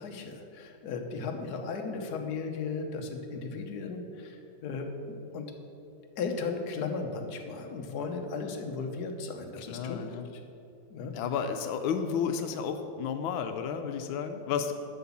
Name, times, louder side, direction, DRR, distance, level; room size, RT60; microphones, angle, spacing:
voice 1, 0.0-5.5 6.2-10.0 10.9-11.1, left 4 dB, 60° left, 4 dB, 1.3 m, -36 dB
voice 2, 9.7-10.3 11.1-14.7, left 7 dB, 90° left, 7 dB, 1.4 m, -32 dB
7.8 x 6.0 x 7.1 m, 2.7 s
omnidirectional pair, 2.1 m